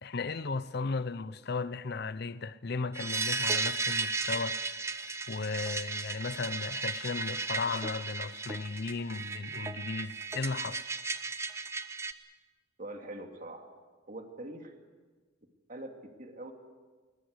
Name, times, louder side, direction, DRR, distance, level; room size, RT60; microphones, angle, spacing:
voice 1, 0.0-4.8 5.3-10.9, left 4 dB, 55° left, 0.7 m, -35 dB
sound 1, 2.9-12.1, right 3 dB, 15° right, 0.9 m, -35 dB
voice 2, 12.8-13.7 14.1-14.8 15.7-16.5, right 1 dB, 45° right, 2.6 m, -43 dB
21.5 x 20.5 x 8.1 m
head